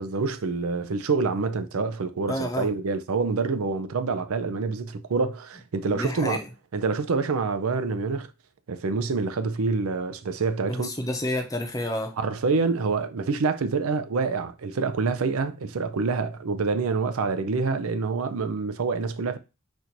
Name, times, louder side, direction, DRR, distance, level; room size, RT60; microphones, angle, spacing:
voice 1, 0.0-6.4 6.7-8.3 8.7-10.9 12.2-19.4, right 4 dB, 80° right, 0.5 m, -26 dB
voice 2, 2.3-2.7 5.8-6.4 10.7-12.1, left 1 dB, 15° left, 0.7 m, -29 dB
4.2 x 2.6 x 4.4 m
head